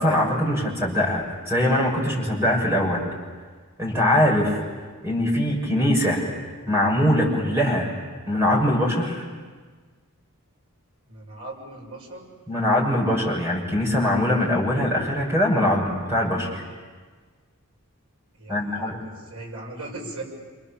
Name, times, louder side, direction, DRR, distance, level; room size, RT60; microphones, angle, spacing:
voice 1, 0.0-3.0 3.8-4.5 5.0-6.2 6.7-7.9 8.3-9.2 12.5-16.6 18.5-19.0, left 1 dB, 10° right, -2 dB, 6.3 m, -22 dB
voice 2, 11.1-12.3 18.3-20.2, right 2 dB, 80° right, -1 dB, 7.3 m, -38 dB
27.5 x 26.5 x 7.4 m, 1.4 s
head